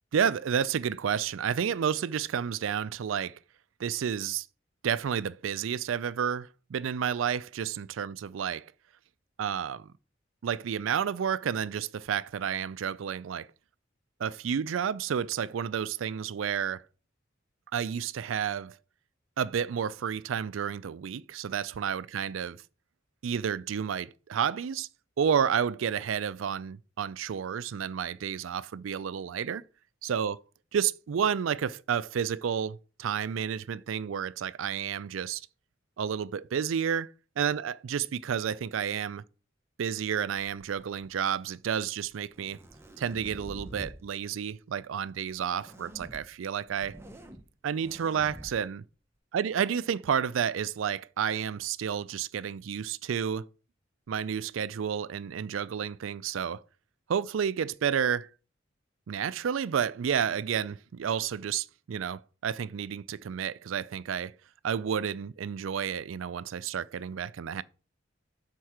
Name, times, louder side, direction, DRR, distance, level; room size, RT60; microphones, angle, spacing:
voice 1, 0.1-3.4 3.8-4.5 4.8-8.7 9.4-9.9 10.4-13.5 14.2-16.8 17.7-18.8 19.4-22.6 23.2-24.9 25.2-29.6 30.0-30.4 30.7-35.4 36.0-39.2 39.8-42.6 43.0-47.0 47.6-48.8 49.3-53.5 54.1-56.6 57.1-58.3 59.1-64.3 64.6-67.6, right 8 dB, 85° right, 0.4 m, -31 dB
sound 1, 40.6-41.2 42.1-44.0 45.5-46.2 46.7-47.4 47.8-48.5, right 1 dB, 15° right, 0.8 m, -46 dB
6.4 x 4.5 x 5.7 m
head